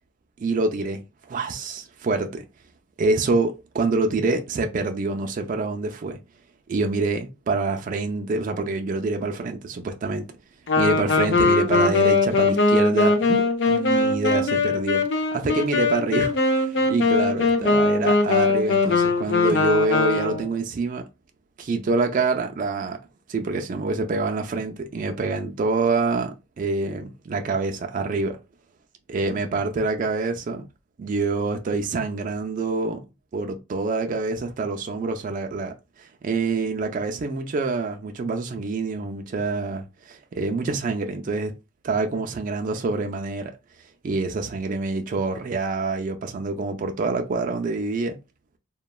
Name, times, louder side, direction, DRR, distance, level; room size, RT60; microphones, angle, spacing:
voice 1, 0.4-2.4 3.0-6.2 6.7-10.3 10.8-15.0 15.3-21.0 21.6-23.0 23.3-28.4 29.1-30.6 31.0-33.0 33.3-35.7 36.0-41.5 41.8-43.5 44.0-48.2, right 3 dB, 40° right, 0.3 m, -26 dB
Wind instrument woodwind instrument, 10.7-20.6, left 3 dB, 60° left, 0.5 m, -21 dB
3.0 x 2.1 x 2.2 m
head